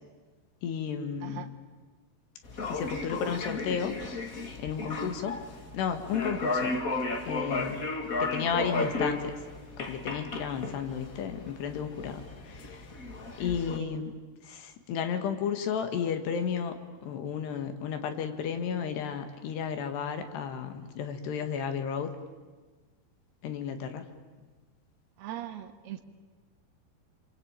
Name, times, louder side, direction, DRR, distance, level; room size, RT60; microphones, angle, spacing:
voice 1, 0.6-1.5 2.7-4.0 4.6-5.4 5.7-6.8 7.3-7.8 8.2-9.3 9.8-12.2 12.5-12.8 13.4-14.1 14.5-16.8 17.0-22.1 23.4-24.0, left 7 dB, 85° left, 7 dB, 4.0 m, -33 dB
sound 1, 2.4-13.8, left 3 dB, 35° left, 1.3 m, -34 dB
voice 2, 25.2-26.0, right 12 dB, 75° right, 4 dB, 3.4 m, -40 dB
28.0 x 24.0 x 9.0 m, 1.4 s
omnidirectional pair, 4.7 m